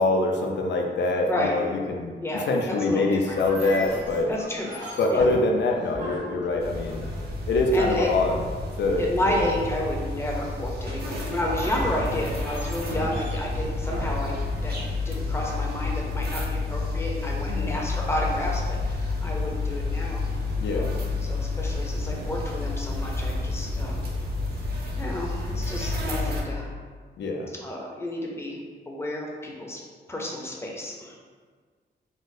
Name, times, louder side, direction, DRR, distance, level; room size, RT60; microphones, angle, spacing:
voice 1, 0.0-4.3 5.0-7.0 7.5-8.4 8.8-9.5 17.5-17.8 20.6-20.9 27.2-27.5, left 2 dB, 70° left, 2 dB, 0.4 m, -25 dB
voice 2, 2.2-3.4 4.3-4.7 5.1-5.3 7.7-8.1 9.0-14.7 15.1-20.2 20.7-24.0 25.0-26.7 27.6-28.6 28.9-29.8 30.1-31.2, left 1 dB, 15° left, -2 dB, 0.5 m, -31 dB
sound 1, 3.3-7.6 11.3-16.4, right 1 dB, 75° right, 1.0 m, -38 dB
sound 2, 6.6-26.4, left 3 dB, 55° right, 0.6 m, -30 dB
3.8 x 2.0 x 2.5 m, 1.6 s
wide cardioid pair, 105°, 19 cm